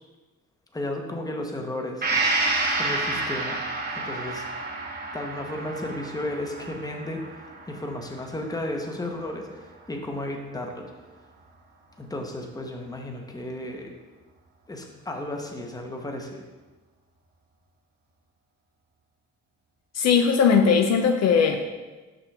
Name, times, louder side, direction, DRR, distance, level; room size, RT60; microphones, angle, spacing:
voice 1, 0.7-2.1 2.8-3.6 3.9-4.4 5.1-7.3 7.7-10.9 12.0-13.9 14.7-16.4, left 1 dB, 10° left, 2 dB, 0.9 m, -33 dB
Gong, 2.0-9.6 10.0-10.1, right 2 dB, 30° right, 1.3 m, -30 dB
voice 2, 20.0-21.7, left 6 dB, 60° left, 5 dB, 0.6 m, -19 dB
6.1 x 6.0 x 3.4 m, 1.2 s
cardioid pair, 90°, 30 cm